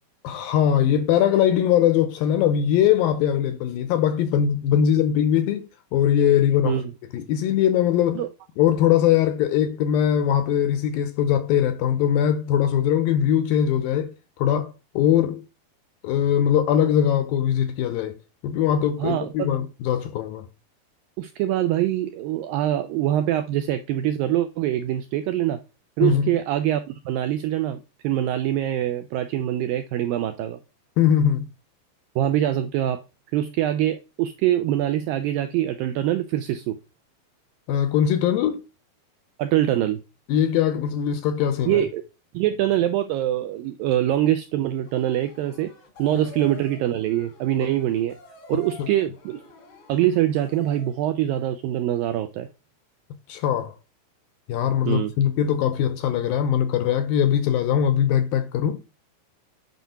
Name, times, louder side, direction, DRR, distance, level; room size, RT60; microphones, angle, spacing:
voice 1, 0.2-6.8 7.1-8.3 8.6-14.1 14.4-15.4 16.0-18.2 18.4-20.5 26.0-26.3 31.0-31.5 37.7-38.6 40.3-41.8 48.8-48.9 53.3-53.7 54.5-58.8, left 9 dB, 80° left, 2.3 m, -21 dB
voice 2, 19.0-19.5 21.2-25.6 26.0-27.8 28.0-30.6 32.2-33.0 33.3-36.8 39.4-40.0 41.7-42.0 42.3-45.7 46.0-48.2 48.5-49.4 49.9-52.5 54.9-55.1, right 12 dB, 85° right, 2.0 m, -24 dB
sound 1, 44.8-51.0, left 3 dB, 55° left, 1.4 m, -47 dB
9.3 x 4.3 x 5.7 m
omnidirectional pair, 4.6 m